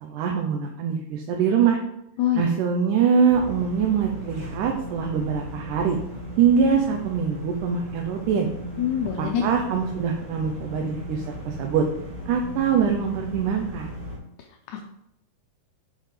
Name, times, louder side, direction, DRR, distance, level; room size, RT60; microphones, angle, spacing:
voice 1, 0.0-1.8 2.4-6.0 6.4-8.5 9.2-11.9 12.3-14.0, right 6 dB, 80° right, 2 dB, 2.3 m, -23 dB
sound 1, 3.3-14.2, right 1 dB, 25° right, 3.4 m, -37 dB
voice 2, 8.8-9.4 14.7-14.8, left 9 dB, 75° left, 3 dB, 2.0 m, -24 dB
7.4 x 5.6 x 5.0 m, 0.78 s
omnidirectional pair, 3.7 m